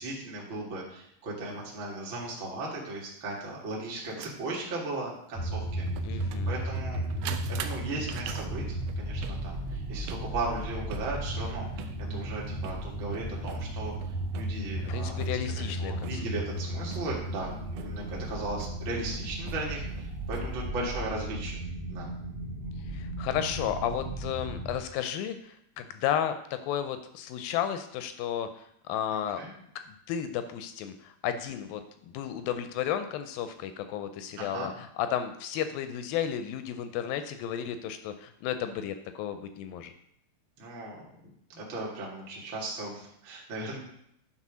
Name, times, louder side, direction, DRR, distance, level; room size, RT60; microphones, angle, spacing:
voice 1, 0.0-5.8 6.5-8.6 9.0-15.2 15.6-21.6 21.9-22.1 29.1-29.5 34.4-34.7 40.6-41.1 41.5-43.8, right 2 dB, 40° right, -4 dB, 2.0 m, -37 dB
sound 1, 1.5-1.6 3.6-20.7, right 9 dB, 85° right, 1.9 m, -46 dB
sound 2, 5.3-24.8, right 1 dB, 60° right, 1.5 m, -35 dB
voice 2, 6.0-6.5 14.9-16.2 22.9-29.4 30.1-39.9, left 9 dB, 80° left, 9 dB, 2.1 m, -33 dB
9.9 x 4.0 x 6.1 m, 0.73 s
omnidirectional pair, 4.5 m